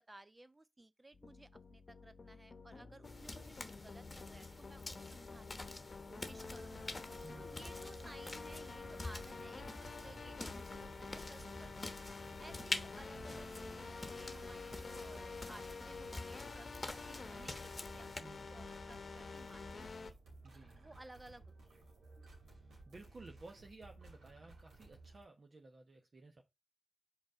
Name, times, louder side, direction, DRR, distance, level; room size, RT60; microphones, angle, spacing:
voice 1, 0.0-5.8 6.1-6.9 7.4-12.0 12.4-20.2 20.7-21.8, right 2 dB, 25° right, 0.5 m, -58 dB
sound 1, 1.1-20.1, left 4 dB, 55° left, 0.9 m, -49 dB
sound 2, 3.0-18.2, left 2 dB, 30° left, 1.0 m, -48 dB
sound 3, 6.4-25.2, right 3 dB, 85° right, 2.6 m, -57 dB
voice 2, 7.2-7.6 13.2-13.5 18.2-18.5 20.4-20.7 22.9-26.4, right 2 dB, 55° right, 1.1 m, -56 dB
5.1 x 4.0 x 5.0 m
supercardioid pair, 40°, 0 cm